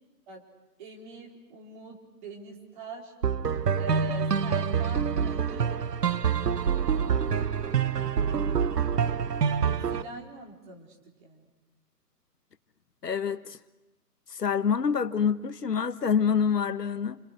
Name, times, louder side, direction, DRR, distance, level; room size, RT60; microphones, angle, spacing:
voice 1, 0.8-3.1 3.8-5.7 9.6-11.4, right 3 dB, 30° right, 4.5 m, -42 dB
sound 1, 3.2-10.0, right 7 dB, 75° right, 1.1 m, -26 dB
voice 2, 13.0-13.6 14.3-17.2, left 6 dB, 75° left, 1.3 m, -26 dB
29.5 x 28.0 x 6.6 m
figure-of-eight pair, 150°, 48 cm